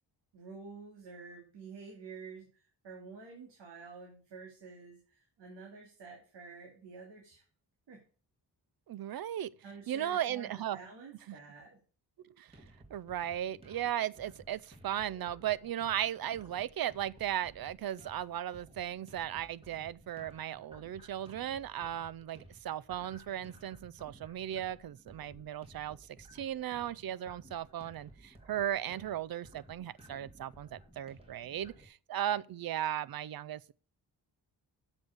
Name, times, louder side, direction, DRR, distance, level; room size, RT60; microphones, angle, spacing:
voice 1, 0.3-7.4 7.9-8.0 9.6-11.8, right 4 dB, 85° right, 2.4 m, -49 dB
voice 2, 8.9-9.5 9.9-10.8 11.3-11.4 12.2-12.6 12.9-33.7, right 11 dB, 60° right, 0.5 m, -36 dB
sound 1, 12.5-31.9, right 1 dB, 15° right, 1.9 m, -57 dB
7.5 x 6.3 x 6.4 m
wide cardioid pair, 115°, 41 cm